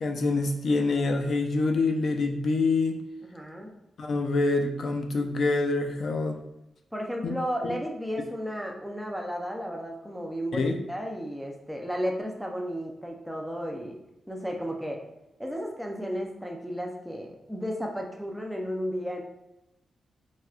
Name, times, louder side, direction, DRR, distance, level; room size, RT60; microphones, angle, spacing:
voice 1, 0.0-3.0 4.0-6.4 10.5-10.7, left 3 dB, 55° left, 4 dB, 0.4 m, -26 dB
voice 2, 3.2-3.7 6.9-14.0 14.3-15.0 15.4-19.2, equal, ahead, 0 dB, 0.5 m, -33 dB
4.2 x 2.2 x 2.4 m, 0.92 s
wide cardioid pair, 140°, 0 cm